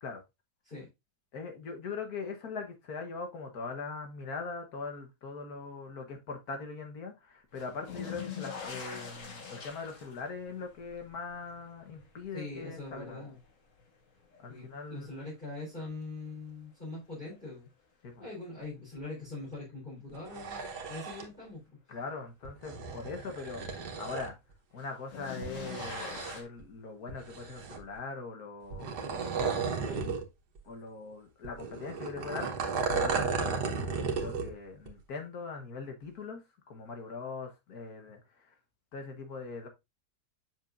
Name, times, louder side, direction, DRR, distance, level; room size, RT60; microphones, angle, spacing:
voice 1, 1.3-13.2 14.4-15.3 18.0-18.2 21.9-24.4 24.7-29.7 30.6-38.5 38.9-39.7, left 4 dB, 70° left, 1.7 m, -41 dB
sound 1, 7.5-14.6 15.0-15.7 17.3-17.4 19.0-19.1 24.8-26.4, left 6 dB, 55° left, 1.7 m, -44 dB
voice 2, 12.3-13.4 14.5-17.7 18.2-21.6 29.8-30.1, left 2 dB, 30° left, 4.2 m, -42 dB
sound 2, 20.1-21.3 22.5-24.3 25.4-26.6 27.1-28.0 28.7-30.3 30.6-30.7 31.4-34.5 34.9-35.0, right 5 dB, 90° right, 1.7 m, -34 dB
7.4 x 6.2 x 2.5 m
omnidirectional pair, 1.7 m